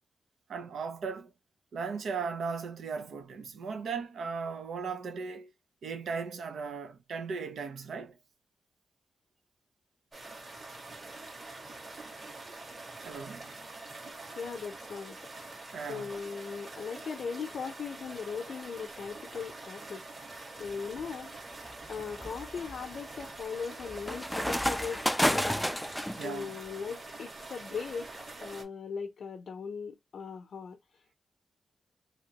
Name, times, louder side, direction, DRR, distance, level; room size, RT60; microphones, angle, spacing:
voice 1, 0.5-1.3 1.7-5.5 5.8-8.2 13.0-13.5 15.7-16.1 26.2-26.6, right 5 dB, 85° right, 0.7 m, -37 dB
sound 1, 10.1-28.6, right 2 dB, 35° right, 1.4 m, -45 dB
voice 2, 14.3-15.2 15.9-20.0 20.6-21.3 21.9-25.7 26.1-28.1 28.4-31.1, left 6 dB, 75° left, 0.6 m, -39 dB
sound 2, 20.7-21.1 21.6-26.3, equal, 5° left, 0.3 m, -31 dB
2.9 x 2.6 x 2.9 m
cardioid pair, 85°, 0 cm